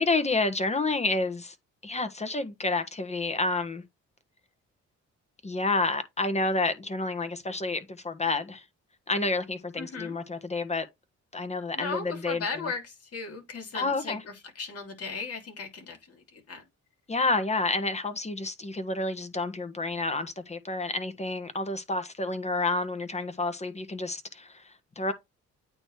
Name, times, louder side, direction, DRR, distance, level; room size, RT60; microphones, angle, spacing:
voice 1, 0.0-1.5 1.8-3.8 5.4-8.6 9.1-10.9 11.3-12.7 13.7-14.2 17.1-25.1, left 3 dB, 20° left, 1.3 m, -29 dB
voice 2, 9.8-10.2 11.7-16.7, left 4 dB, 50° left, 3.1 m, -37 dB
8.8 x 3.1 x 4.7 m
cardioid pair, 90°, 30 cm